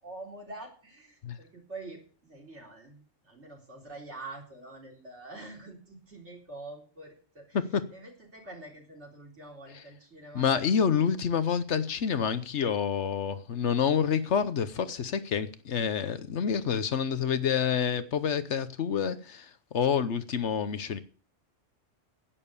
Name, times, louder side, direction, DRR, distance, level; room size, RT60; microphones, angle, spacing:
voice 1, 0.0-7.6 7.9-10.5, right 2 dB, 65° right, 4.3 m, -46 dB
voice 2, 10.3-21.0, left 7 dB, 70° left, 1.2 m, -28 dB
11.0 x 9.1 x 6.8 m
omnidirectional pair, 1.3 m